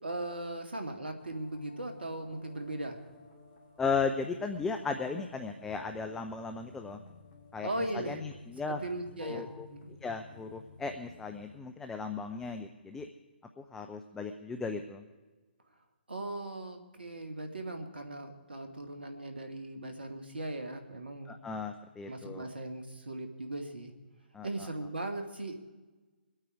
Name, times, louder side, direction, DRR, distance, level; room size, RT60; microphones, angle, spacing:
voice 1, 0.0-3.0 7.6-8.2 8.7-10.0 16.1-21.4 22.0-23.9 24.4-25.6, right 2 dB, 70° right, 6 dB, 2.0 m, -38 dB
sound 1, 1.2-11.6, left 3 dB, 30° left, 2.2 m, -54 dB
voice 2, 3.8-7.0 7.5-8.8 9.2-9.7 10.0-13.1 13.6-15.1 21.3-22.5 24.3-24.7, left 4 dB, 5° left, 6 dB, 0.6 m, -36 dB
23.5 x 8.9 x 4.7 m, 1.2 s
figure-of-eight pair, 135°, 6 cm